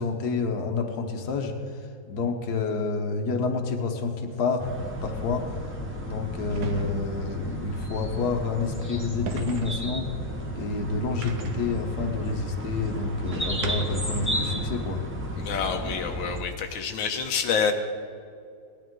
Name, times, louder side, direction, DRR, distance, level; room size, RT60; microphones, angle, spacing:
voice 1, 0.0-1.8 2.1-4.7 5.0-5.5 6.0-10.1 10.5-15.0, left 4 dB, 60° left, 4 dB, 1.6 m, -29 dB
sound 1, 4.3-4.4 6.5-7.2 9.3-9.8 11.2-11.7 13.3-14.1, right 6 dB, 85° right, 1.6 m, -38 dB
sound 2, 4.6-16.4, equal, 5° right, 1.4 m, -33 dB
voice 2, 15.4-17.7, left 6 dB, 85° left, 4 dB, 1.6 m, -27 dB
17.5 x 11.0 x 3.8 m, 2.4 s
omnidirectional pair, 2.0 m